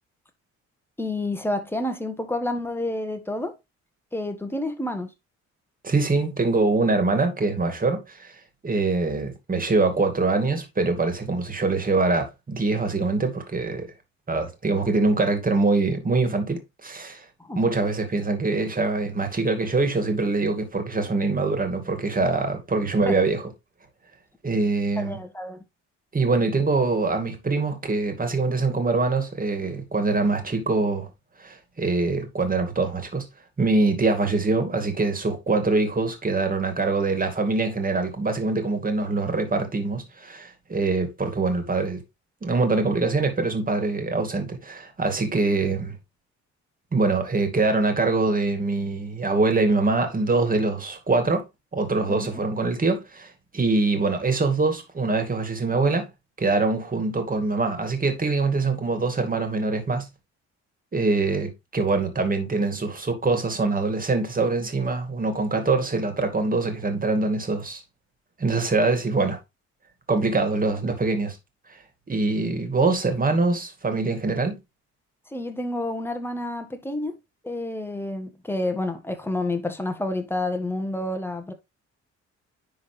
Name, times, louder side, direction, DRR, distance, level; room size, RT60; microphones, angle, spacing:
voice 1, 1.0-3.5 4.1-5.1 17.4-17.6 23.1-23.2 25.0-25.6 52.1-52.3 75.3-77.2 77.4-81.5, left 1 dB, 5° left, 1.5 m, -29 dB
voice 2, 5.8-8.3 8.6-13.9 14.3-17.3 17.5-23.5 24.4-25.2 26.1-31.1 31.4-33.2 33.6-42.0 42.4-45.9 46.9-51.4 51.7-56.1 56.4-60.1 60.9-67.8 68.4-69.4 70.1-71.4 71.7-71.8 72.1-74.6, right 3 dB, 30° right, 2.3 m, -24 dB
10.5 x 3.8 x 3.3 m
cardioid pair, 90°, 30 cm